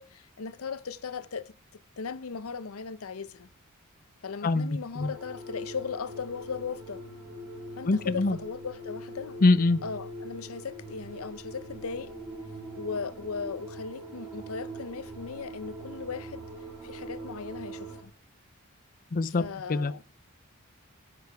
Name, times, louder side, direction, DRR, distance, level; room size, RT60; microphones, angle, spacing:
voice 1, 0.0-3.5 4.2-7.0 7.8-9.4 9.8-12.1 12.8-16.4 16.8-18.1 19.4-20.0, left 5 dB, 75° left, 0.7 m, -37 dB
voice 2, 4.4-5.1 7.8-8.4 9.4-9.8 19.1-19.9, left 3 dB, 40° left, 0.5 m, -24 dB
sound 1, 5.0-18.0, right 1 dB, 20° right, 3.9 m, -42 dB
9.6 x 8.6 x 4.6 m
head